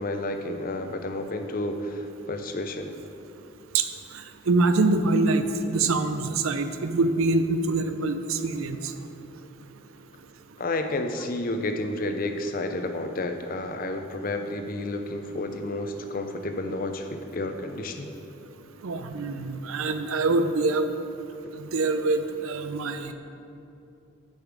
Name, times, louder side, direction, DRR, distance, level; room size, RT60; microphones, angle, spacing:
voice 1, 0.0-2.9 10.6-18.1, left 2 dB, 40° left, 6 dB, 0.5 m, -31 dB
voice 2, 4.1-8.9 18.8-20.9 21.5-23.1, right 3 dB, 80° right, 9 dB, 0.5 m, -25 dB
8.3 x 5.4 x 4.7 m, 2.7 s
head